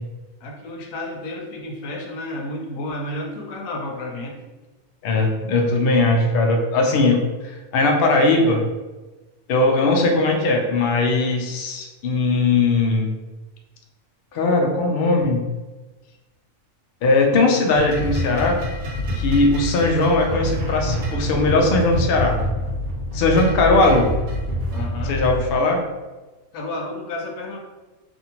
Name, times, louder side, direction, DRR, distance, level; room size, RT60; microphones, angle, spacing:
voice 1, 0.4-4.4 24.7-25.2 26.5-27.6, left 1 dB, 85° left, 1 dB, 1.0 m, -31 dB
voice 2, 5.0-7.2 7.7-8.6 9.5-13.1 14.3-15.4 17.0-18.6 19.1-22.4 23.1-24.1 25.1-25.8, left 2 dB, 70° left, 1 dB, 0.5 m, -19 dB
sound 1, 17.7-25.4, left 1 dB, 90° right, 1.1 m, -26 dB
2.6 x 2.5 x 2.8 m, 1.2 s
omnidirectional pair, 1.4 m